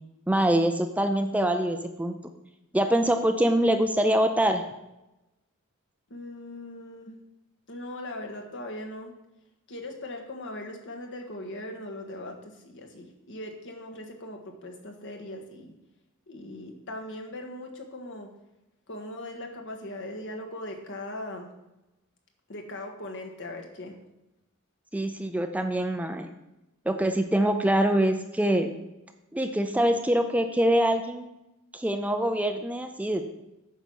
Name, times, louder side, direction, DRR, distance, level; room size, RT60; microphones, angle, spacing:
voice 1, 0.3-2.1 2.7-4.6 24.9-26.3 26.9-28.8 29.3-31.3 31.7-33.3, right 1 dB, 5° right, 6 dB, 0.5 m, -24 dB
voice 2, 6.1-7.1 7.7-9.1 9.7-15.7 16.3-18.3 18.9-21.5 22.5-24.0, left 1 dB, 60° left, 3 dB, 1.5 m, -39 dB
9.3 x 5.5 x 6.4 m, 0.94 s
head